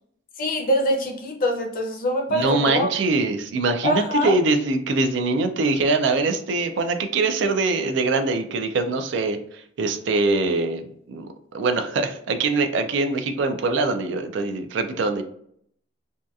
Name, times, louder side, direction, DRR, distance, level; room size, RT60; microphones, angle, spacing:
voice 1, 0.4-2.9 3.8-4.4, equal, 45° left, 2 dB, 0.5 m, -24 dB
voice 2, 2.3-11.3 11.5-15.2, right 3 dB, 65° right, 8 dB, 0.3 m, -23 dB
2.7 x 2.3 x 2.3 m, 0.68 s
head